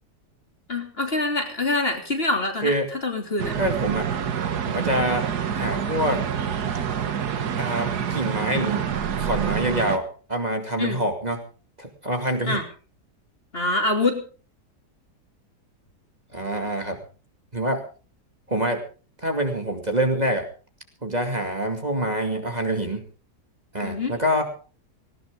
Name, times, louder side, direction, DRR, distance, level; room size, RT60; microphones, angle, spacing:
voice 1, 0.7-3.5 10.8-11.0 12.4-12.6 13.5-14.2 23.8-24.1, left 2 dB, 35° left, 4 dB, 3.3 m, -25 dB
sound 1, 3.4-10.0, right 8 dB, 75° right, 1.8 m, -27 dB
voice 2, 3.6-4.1 4.7-5.3 5.5-6.2 7.6-8.8 9.2-11.4 11.8-12.6 16.3-17.0 17.5-17.8 18.5-18.8 19.2-20.4 21.0-23.0 23.7-24.4, right 1 dB, 25° right, 4 dB, 2.5 m, -25 dB
19.0 x 18.0 x 3.8 m, 0.38 s
omnidirectional pair, 1.7 m